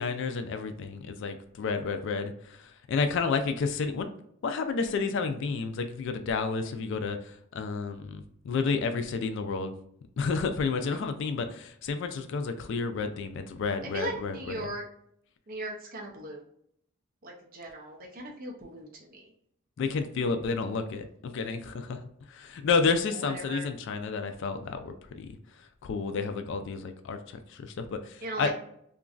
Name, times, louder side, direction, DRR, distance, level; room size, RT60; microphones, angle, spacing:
voice 1, 0.0-4.1 4.4-9.7 10.2-14.7 19.8-22.0 22.3-28.5, left 4 dB, 60° left, 8 dB, 0.3 m, -31 dB
voice 2, 10.6-11.0 13.9-14.8 15.5-16.4 17.2-19.3 23.1-23.7 28.2-28.6, right 1 dB, 40° right, -1 dB, 0.5 m, -38 dB
2.9 x 2.4 x 2.3 m, 0.70 s
head